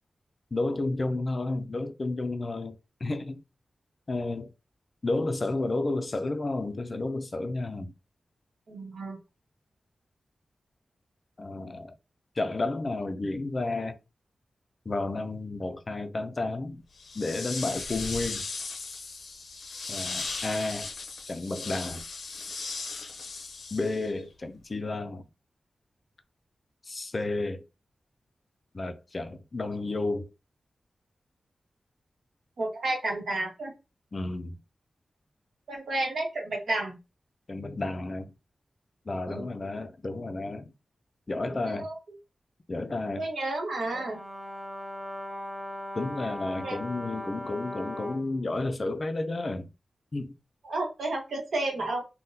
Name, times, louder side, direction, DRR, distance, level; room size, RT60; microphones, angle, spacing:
voice 1, 0.5-3.4 4.1-4.5 5.0-7.9 11.4-11.9 12.4-14.0 14.9-16.8 17.2-18.4 19.9-20.9 21.3-22.0 23.7-25.3 26.8-27.6 28.7-30.3 34.1-34.6 37.5-38.3 39.1-40.7 41.3-41.9 42.7-43.3 45.9-49.7 50.1-50.3, left 2 dB, 35° left, 0.3 m, -31 dB
voice 2, 8.7-9.2 32.6-33.7 35.7-37.0 39.3-39.4 41.6-42.0 43.2-44.2 46.6-46.8 50.6-52.0, right 2 dB, 75° right, 1.0 m, -31 dB
sound 1, 17.0-24.2, left 4 dB, 90° left, 0.6 m, -37 dB
Brass instrument, 43.9-48.3, left 1 dB, 25° right, 0.6 m, -38 dB
3.5 x 2.1 x 2.7 m
wide cardioid pair, 150°, 0 cm